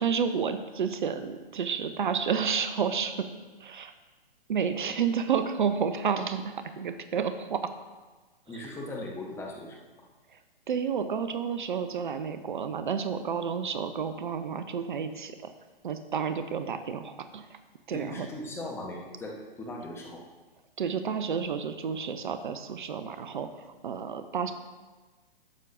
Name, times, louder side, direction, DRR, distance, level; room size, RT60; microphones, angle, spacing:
voice 1, 0.0-3.3 3.6-3.9 4.5-7.6 8.5-8.6 10.3-10.4 10.7-15.5 15.8-17.6 17.9-18.3 20.8-24.5, right 6 dB, 55° right, 10 dB, 0.6 m, -30 dB
voice 2, 8.5-9.8 17.9-20.2, left 1 dB, 10° left, -1 dB, 0.9 m, -38 dB
11.5 x 8.2 x 2.5 m, 1.3 s
figure-of-eight pair, 120°, 29 cm